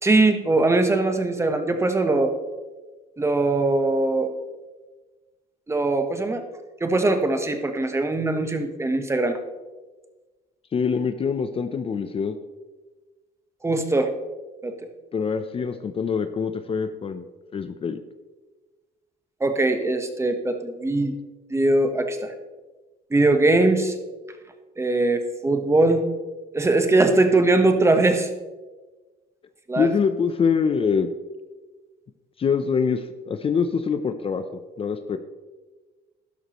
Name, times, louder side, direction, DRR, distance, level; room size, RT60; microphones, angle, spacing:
voice 1, 0.0-2.3 3.2-4.3 5.7-6.4 6.8-9.4 13.6-14.1 14.6-14.7 19.4-21.1 21.5-22.3 23.1-23.9 24.8-26.0 26.5-28.3 29.7-29.9, right 2 dB, 15° right, 6 dB, 1.1 m, -21 dB
voice 2, 10.7-12.4 15.1-17.3 17.5-18.0 29.8-31.1 32.4-34.4 34.8-35.2, left 6 dB, 35° left, 9 dB, 0.6 m, -24 dB
12.0 x 11.0 x 3.1 m, 1.3 s
cardioid pair, 110°, 17 cm